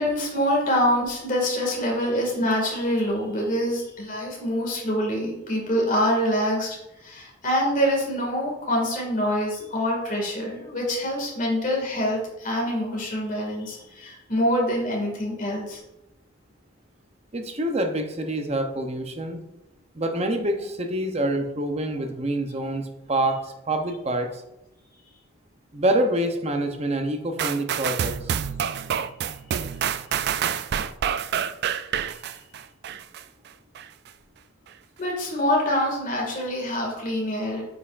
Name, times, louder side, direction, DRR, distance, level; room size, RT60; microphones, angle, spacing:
voice 1, 0.0-15.8 35.0-37.7, equal, 40° left, -1 dB, 2.1 m, -25 dB
voice 2, 17.3-19.4 19.9-24.4 25.7-28.3, right 1 dB, 35° right, 5 dB, 0.7 m, -26 dB
sound 1, 27.4-33.2 33.7-33.9, right 8 dB, 55° right, 0.3 m, -27 dB
8.1 x 5.4 x 2.5 m, 0.89 s
head